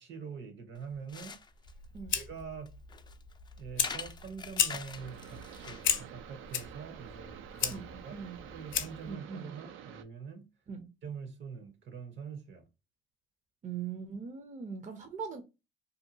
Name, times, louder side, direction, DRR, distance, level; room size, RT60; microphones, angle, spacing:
voice 1, 0.0-1.3 2.1-2.8 3.6-10.5 11.0-12.7, right 6 dB, 65° right, 1.0 m, -45 dB
sound 1, 0.7-5.9, left 5 dB, 20° left, 0.3 m, -45 dB
Fire, 1.6-9.1, left 9 dB, 80° left, 0.5 m, -36 dB
sound 2, 4.9-10.0, right 10 dB, 85° right, 0.4 m, -49 dB
voice 2, 7.7-8.4 9.0-9.5 10.7-10.9 13.6-15.4, right 6 dB, 40° right, 0.5 m, -41 dB
2.7 x 2.3 x 2.6 m
cardioid pair, 90°, 20 cm